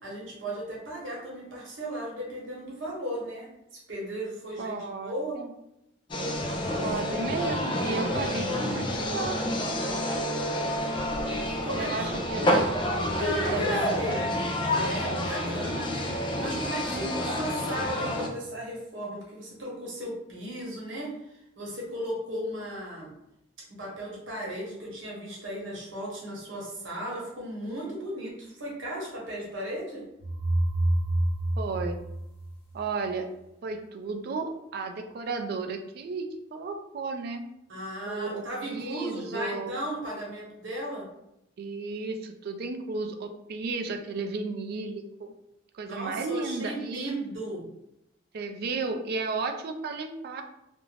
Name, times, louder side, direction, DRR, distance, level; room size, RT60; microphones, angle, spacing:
voice 1, 0.0-5.4 11.5-12.2 13.1-14.2 14.7-16.1 16.4-21.2 21.6-23.1 23.8-30.0 37.7-41.1 45.8-47.6, right 1 dB, 85° right, -3 dB, 1.0 m, -36 dB
voice 2, 4.6-5.5 6.8-9.4 11.8-12.7 13.4-14.5 16.9-17.3 31.6-32.0 32.7-33.3 33.6-36.3 36.5-37.4 38.0-39.8 41.6-45.3 45.7-47.1 48.3-50.4, right 3 dB, 55° right, 5 dB, 0.3 m, -33 dB
sound 1, 6.1-18.3, left 1 dB, 25° left, 0.3 m, -29 dB
sound 2, 30.2-33.1, right 1 dB, 55° left, 0.7 m, -28 dB
2.4 x 2.1 x 3.2 m, 0.82 s
head